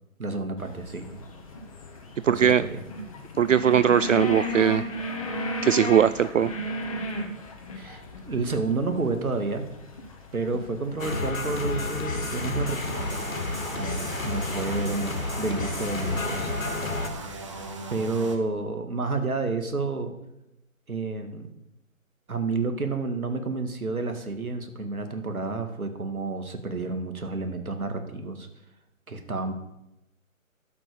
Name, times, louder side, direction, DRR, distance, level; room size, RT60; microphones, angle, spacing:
voice 1, 0.2-1.1 2.3-2.8 7.7-9.6 10.3-13.2 13.7-16.5 17.9-20.1 20.9-21.5 22.3-28.5 29.1-29.5, right 3 dB, 80° right, 6 dB, 2.3 m, -30 dB
sound 1, 0.6-17.7, left 1 dB, 25° left, 1.2 m, -37 dB
voice 2, 2.2-2.6 3.4-4.8 5.6-6.5, right 8 dB, 65° right, 15 dB, 0.5 m, -20 dB
sound 2, 11.0-17.1, left 3 dB, 70° left, 2.3 m, -31 dB
sound 3, 12.8-18.4, right 3 dB, 20° right, 0.9 m, -38 dB
12.0 x 6.1 x 7.0 m, 0.89 s
figure-of-eight pair, 155°, 42 cm